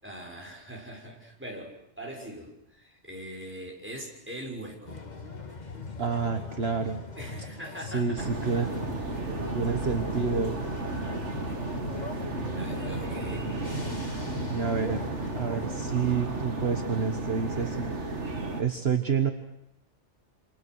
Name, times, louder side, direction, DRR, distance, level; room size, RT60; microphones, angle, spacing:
voice 1, 0.0-5.0 7.2-8.5 12.5-13.5, right 1 dB, 10° right, 0 dB, 6.2 m, -42 dB
sound 1, 4.9-16.2, left 4 dB, 40° left, 1.7 m, -40 dB
voice 2, 6.0-7.0 7.9-8.7 9.5-10.6 14.5-15.0 15.3-17.9 18.6-19.3, right 6 dB, 60° right, 6 dB, 1.7 m, -28 dB
sound 2, 8.2-18.6, right 3 dB, 80° right, 2.5 m, -33 dB
28.0 x 27.5 x 6.4 m, 0.81 s
omnidirectional pair, 1.2 m